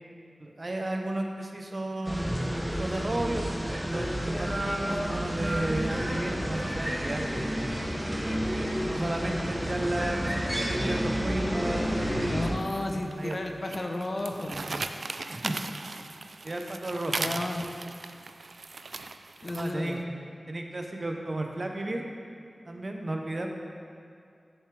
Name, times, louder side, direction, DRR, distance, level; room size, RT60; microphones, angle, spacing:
voice 1, 0.4-3.5 3.9-7.8 8.9-12.4 12.9-13.4 15.3-15.6 16.4-17.4 19.5-20.0 20.5-22.0 22.6-23.5, right 1 dB, 40° right, 2 dB, 0.8 m, -33 dB
sound 1, 2.0-12.5, equal, 10° right, 1.0 m, -30 dB
voice 2, 12.3-14.8 17.2-17.7 19.4-20.1, left 1 dB, 40° left, 3 dB, 0.7 m, -33 dB
sound 2, 12.6-19.9, right 3 dB, 70° right, 0.3 m, -38 dB
10.0 x 6.8 x 3.4 m, 2.4 s
wide cardioid pair, 90°, 0 cm